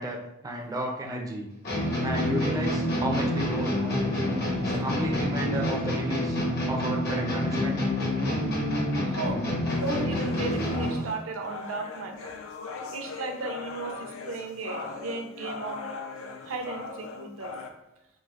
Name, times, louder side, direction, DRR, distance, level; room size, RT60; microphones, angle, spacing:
voice 1, 0.0-1.5 2.0-4.0 4.6-6.4 6.7-7.9, right 1 dB, 20° right, 0 dB, 0.4 m, -32 dB
sound 1, 1.6-11.1, left 1 dB, 50° left, 0.9 m, -27 dB
voice 2, 9.0-9.4 9.7-12.3 12.9-15.8 16.5-17.5, right 3 dB, 75° right, 3 dB, 0.6 m, -35 dB
sound 2, 9.7-17.7, left 4 dB, 70° left, 0.4 m, -40 dB
4.6 x 2.4 x 2.4 m, 0.88 s
head